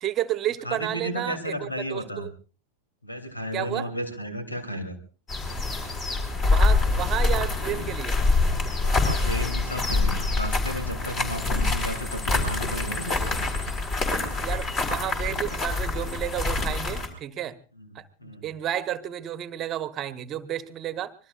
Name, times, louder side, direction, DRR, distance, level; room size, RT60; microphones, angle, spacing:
voice 1, 0.0-2.3 3.5-3.9 6.5-8.2 14.4-17.6 17.9-21.1, right 12 dB, 30° right, 13 dB, 1.2 m, -31 dB
voice 2, 0.6-2.3 3.0-5.0 8.8-13.2 17.8-17.9 18.2-18.5, equal, 85° left, 7 dB, 3.1 m, -33 dB
sound 1, 5.3-17.1, left 3 dB, 30° left, 5.0 m, -25 dB
25.5 x 22.0 x 2.5 m, 0.38 s
figure-of-eight pair, 90°, 0 cm